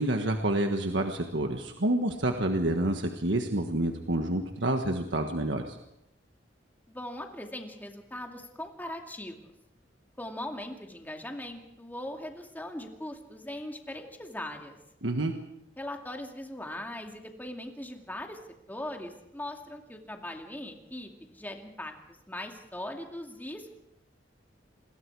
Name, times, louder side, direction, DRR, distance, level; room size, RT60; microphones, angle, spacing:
voice 1, 0.0-5.8 15.0-15.3, right 1 dB, 75° right, 4 dB, 1.5 m, -28 dB
voice 2, 6.9-9.5 10.2-14.7 15.8-18.4 18.7-23.7, left 1 dB, 10° left, 3 dB, 2.3 m, -40 dB
27.5 x 21.5 x 4.8 m, 0.83 s
head